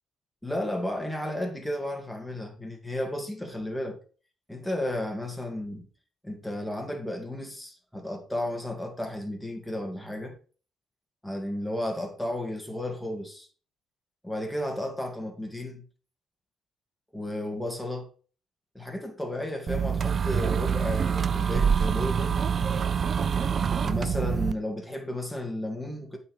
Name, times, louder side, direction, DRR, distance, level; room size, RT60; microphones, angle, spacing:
voice 1, 0.4-4.0 4.5-5.9 6.2-10.4 11.2-13.5 14.2-15.8 17.1-18.1 18.7-22.5 23.8-26.2, left 1 dB, 5° left, 2.3 m, -33 dB
sound 1, 19.7-24.5, right 7 dB, 45° right, 0.5 m, -26 dB
8.5 x 4.5 x 5.0 m
cardioid pair, 90°, 0 cm